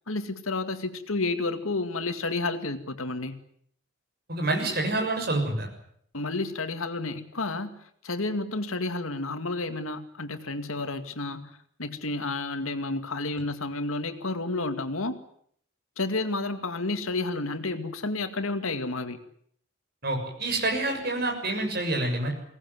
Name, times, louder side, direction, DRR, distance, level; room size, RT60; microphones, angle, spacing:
voice 1, 0.1-3.4 6.1-7.7 8.0-15.2 16.0-19.2, left 3 dB, 80° left, 8 dB, 2.3 m, -31 dB
voice 2, 4.3-5.7 20.0-22.3, right 2 dB, 45° right, 2 dB, 7.0 m, -27 dB
23.5 x 18.5 x 9.5 m, 0.65 s
head